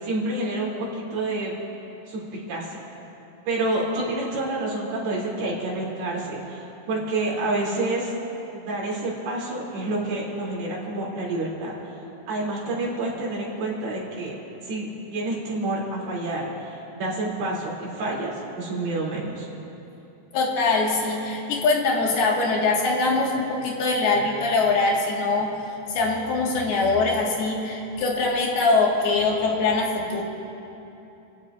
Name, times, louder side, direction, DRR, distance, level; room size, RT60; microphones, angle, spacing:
voice 1, 0.0-1.5 2.1-2.8 3.5-8.1 8.5-11.7 12.3-14.4 14.7-19.5, right 2 dB, 80° right, -5 dB, 5.1 m, -28 dB
voice 2, 20.3-25.5 25.9-30.2, left 3 dB, 80° left, -2 dB, 3.8 m, -23 dB
29.5 x 16.0 x 2.6 m, 2.9 s
omnidirectional pair, 4.4 m